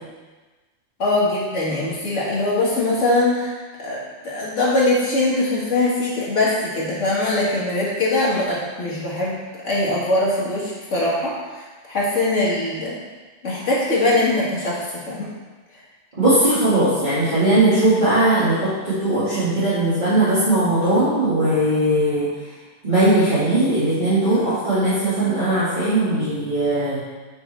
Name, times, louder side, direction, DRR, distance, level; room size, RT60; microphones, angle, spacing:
voice 1, 1.0-3.5 3.8-9.4 9.6-13.0 13.4-15.3, left 2 dB, 80° left, -6 dB, 2.2 m, -22 dB
voice 2, 16.2-22.3 22.8-27.0, right 1 dB, 40° right, -14 dB, 2.4 m, -19 dB
8.8 x 5.7 x 3.4 m, 1.3 s
omnidirectional pair, 1.2 m